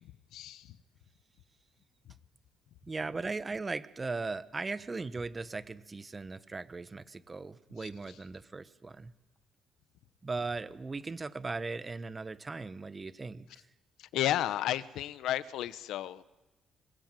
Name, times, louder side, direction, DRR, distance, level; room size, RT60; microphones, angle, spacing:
voice 1, 0.3-0.7 7.8-7.9 14.0-16.2, left 13 dB, 85° left, 15 dB, 1.0 m, -33 dB
voice 2, 2.8-9.1 10.2-13.5, right 3 dB, 25° right, 15 dB, 1.1 m, -38 dB
27.0 x 21.5 x 9.1 m, 1.1 s
cardioid pair, 90°, 0 cm